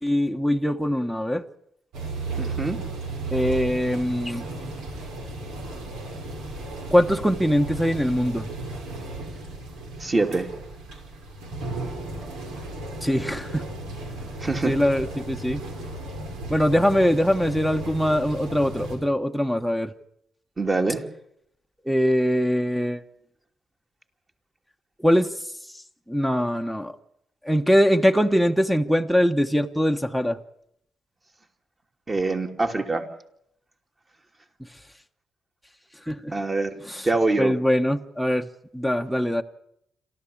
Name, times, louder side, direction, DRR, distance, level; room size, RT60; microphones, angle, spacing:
voice 1, 0.0-1.4 3.3-4.5 6.9-8.5 13.0-13.6 14.6-15.6 16.5-19.9 21.8-23.0 25.0-25.3 26.1-26.9 27.4-30.4 36.1-36.3 36.9-37.1 37.4-38.5 38.7-39.4, equal, 5° right, 7 dB, 1.1 m, -22 dB
sound 1, 1.9-19.0, right 2 dB, 90° right, 5.8 m, -35 dB
voice 2, 2.4-2.8 10.0-10.5 14.4-14.7 20.6-21.0 32.1-33.1 36.3-36.7 37.0-37.5, right 3 dB, 25° right, 5 dB, 3.0 m, -24 dB
27.5 x 13.5 x 8.6 m, 0.74 s
cardioid pair, 90°, 0 cm